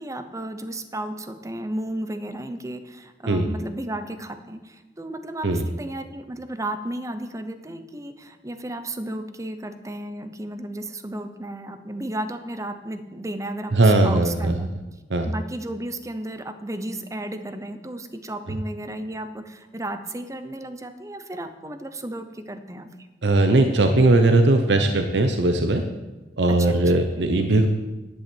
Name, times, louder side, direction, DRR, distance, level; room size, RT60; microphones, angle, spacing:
voice 1, 0.0-14.7 15.3-22.9 26.5-26.8, right 1 dB, 20° right, 9 dB, 0.7 m, -33 dB
voice 2, 13.7-14.6 15.1-15.3 23.2-25.8 26.4-27.7, right 2 dB, 80° right, 6 dB, 0.8 m, -19 dB
11.0 x 5.6 x 8.5 m, 1.2 s
head